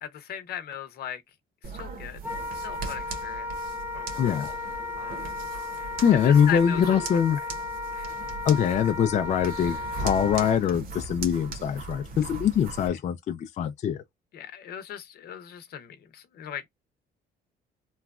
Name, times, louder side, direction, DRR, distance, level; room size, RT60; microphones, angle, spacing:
voice 1, 0.0-1.2 1.6-2.2 2.5-3.5 3.9-4.6 5.0-5.4 5.8-7.0 7.9-8.1 12.9-13.0 14.3-16.7, left 10 dB, 65° left, 0.8 m, -38 dB
sound 1, 1.6-12.9, right 3 dB, 60° right, 1.1 m, -39 dB
Wind instrument woodwind instrument, 2.2-10.6, left 4 dB, 10° right, 0.9 m, -35 dB
voice 2, 4.2-4.5 6.0-7.4 8.4-14.0, left 8 dB, 45° left, 0.5 m, -23 dB
3.1 x 2.3 x 2.4 m
cardioid pair, 110°, 17 cm